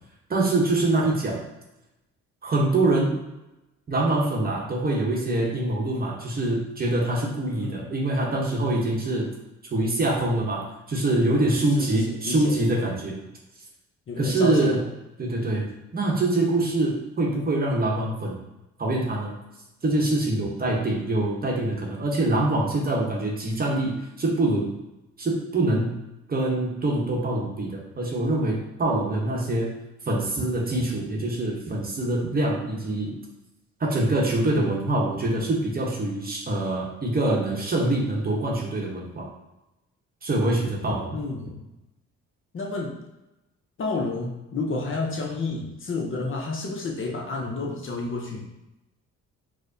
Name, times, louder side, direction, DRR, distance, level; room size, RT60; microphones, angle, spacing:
voice 1, 0.3-1.4 2.4-3.2 3.9-9.3 9.7-13.2 14.2-14.8 15.2-18.4 18.8-19.3 19.8-24.7 25.2-26.0 26.3-29.7 30.1-33.2 33.8-39.3 40.2-41.1, right 2 dB, 30° right, -2 dB, 0.9 m, -24 dB
voice 2, 11.7-12.5 14.1-14.8 41.1-41.6 42.5-43.0 43.8-48.5, left 3 dB, 45° left, 0 dB, 0.7 m, -30 dB
4.6 x 2.1 x 2.6 m, 0.95 s
cardioid pair, 90°, 30 cm